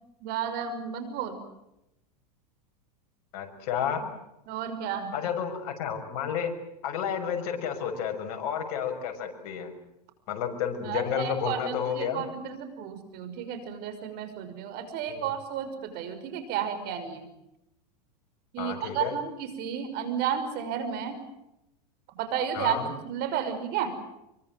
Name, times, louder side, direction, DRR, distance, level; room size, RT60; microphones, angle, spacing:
voice 1, 0.2-1.3 4.5-5.1 10.8-17.3 18.5-21.2 22.2-24.0, right 8 dB, 50° right, 10 dB, 5.9 m, -32 dB
voice 2, 3.3-4.1 5.1-6.5 6.8-9.7 10.3-12.2 15.1-15.2 18.6-19.1 22.5-22.9, left 8 dB, 55° left, 5 dB, 6.6 m, -31 dB
25.5 x 23.5 x 7.8 m, 0.86 s
hypercardioid pair, 115°, 21 cm